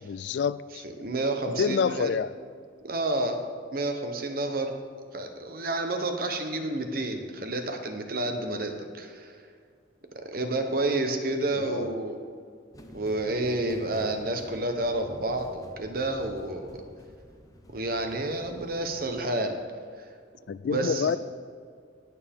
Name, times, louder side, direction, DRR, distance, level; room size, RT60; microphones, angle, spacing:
voice 1, 0.0-0.8 1.6-2.3 11.6-11.9 20.5-21.2, left 6 dB, 65° left, 16 dB, 0.3 m, -27 dB
voice 2, 0.8-2.1 2.8-3.4 3.7-4.7 5.1-9.4 10.2-12.2 12.9-16.8 17.7-19.6 20.6-21.1, right 2 dB, 50° right, 5 dB, 1.1 m, -30 dB
sound 1, 12.7-19.2, equal, 20° left, 0.7 m, -49 dB
18.0 x 6.9 x 3.7 m, 2.2 s
head